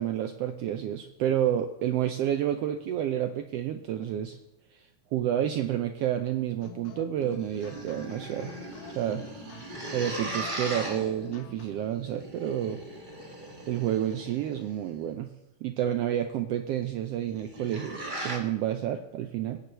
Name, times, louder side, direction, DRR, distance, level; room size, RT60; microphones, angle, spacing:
voice 1, 0.0-4.4 5.1-8.5 8.9-9.3 9.9-12.8 13.7-15.3 15.6-18.0 18.2-19.6, right 10 dB, 85° right, 7 dB, 1.4 m, -29 dB
sound 1, 6.6-11.9, left 11 dB, 75° left, 2.1 m, -49 dB
sound 2, 7.2-14.8 17.2-18.4, right 2 dB, 25° right, 1.0 m, -39 dB
21.5 x 9.7 x 3.0 m, 0.92 s
omnidirectional pair, 3.5 m